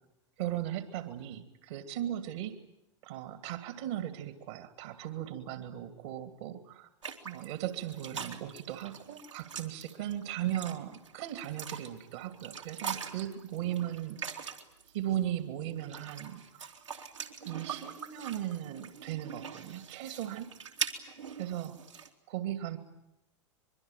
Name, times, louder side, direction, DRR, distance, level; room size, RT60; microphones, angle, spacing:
voice 1, 0.4-2.6 3.0-6.9 7.2-14.5 14.9-16.7 17.4-20.5 21.4-21.8 22.3-22.8, right 12 dB, 60° right, 8 dB, 2.4 m, -37 dB
sound 1, 7.0-14.9 15.6-22.1, right 7 dB, 85° right, 3.0 m, -42 dB
25.0 x 23.0 x 9.1 m, 0.85 s
figure-of-eight pair, 90°, 15 cm